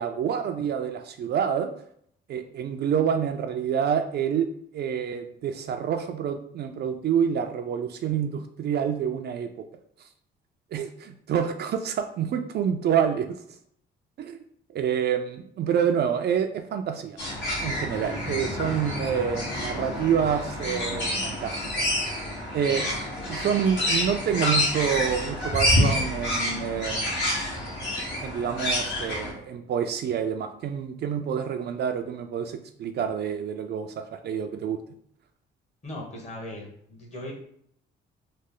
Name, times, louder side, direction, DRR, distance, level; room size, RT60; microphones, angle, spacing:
voice 1, 0.0-1.7 2.3-4.5 4.7-9.6 10.7-13.3 14.2-14.4 14.7-17.2 17.6-21.9 22.1-22.2 22.5-22.9 23.3-27.2 28.2-34.8, right 8 dB, 55° right, 6 dB, 0.4 m, -27 dB
sound 1, 17.2-29.3, left 1 dB, 70° left, 1.4 m, -28 dB
voice 2, 35.8-37.3, left 1 dB, 35° left, -1 dB, 1.2 m, -38 dB
3.2 x 2.1 x 3.6 m, 0.66 s
cardioid pair, 90°, 20 cm